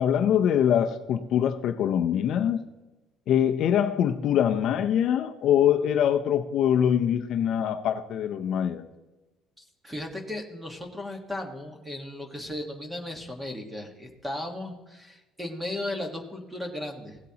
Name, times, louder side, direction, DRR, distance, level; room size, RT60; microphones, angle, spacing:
voice 1, 0.0-2.6 3.3-8.9, left 9 dB, 50° left, 0.5 m, -23 dB
voice 2, 9.6-17.2, left 1 dB, 10° right, 1.3 m, -36 dB
16.5 x 8.0 x 2.8 m
cardioid pair, 150°, 0 cm